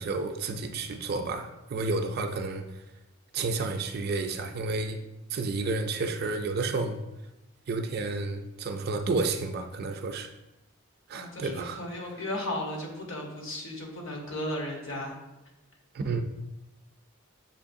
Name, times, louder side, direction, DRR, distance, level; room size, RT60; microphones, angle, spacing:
voice 1, 0.0-2.8 3.3-5.0 5.3-7.0 7.7-10.3 11.1-11.8 15.9-16.2, right 3 dB, 45° right, 6 dB, 0.3 m, -31 dB
voice 2, 11.1-15.1, left 1 dB, 65° left, 0 dB, 1.0 m, -35 dB
6.7 x 3.0 x 2.6 m, 0.97 s
head